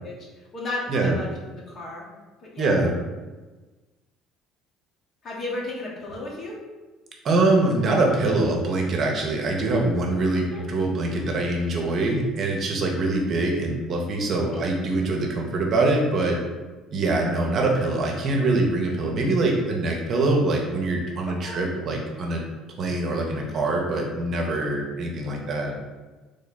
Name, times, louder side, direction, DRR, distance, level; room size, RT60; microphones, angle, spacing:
voice 1, 0.0-2.1 2.4-2.8 5.2-6.6 10.5-10.7 14.5-14.8 21.2-21.6, left 2 dB, 45° left, -4 dB, 1.2 m, -34 dB
voice 2, 2.6-2.9 7.2-16.4 16.9-22.4 22.8-25.7, right 2 dB, 50° right, 0 dB, 0.7 m, -24 dB
3.2 x 2.1 x 4.1 m, 1.2 s
hypercardioid pair, 65°, 0 cm